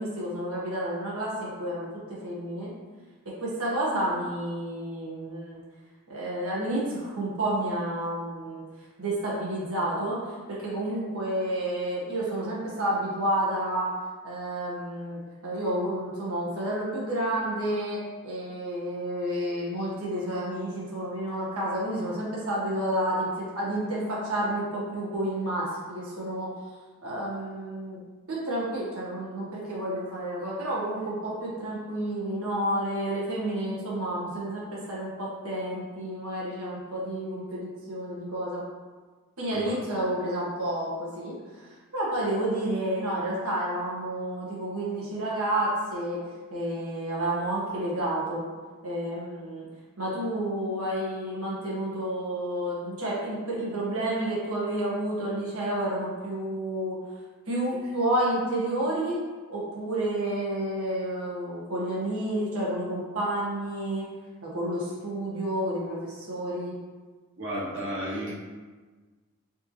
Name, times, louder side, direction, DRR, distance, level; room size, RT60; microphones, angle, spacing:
voice 1, 0.0-2.7 3.2-5.6 6.1-8.6 9.0-13.9 14.2-26.5 27.0-28.0 28.3-38.6 39.4-41.7 41.9-46.2 46.5-48.4 48.8-49.7 50.0-57.0 57.5-59.2 59.5-64.1 64.4-66.7, right 1 dB, 85° right, -5 dB, 1.3 m, -30 dB
voice 2, 67.4-68.3, equal, 65° right, -7 dB, 1.4 m, -33 dB
5.1 x 2.8 x 2.9 m, 1.4 s
head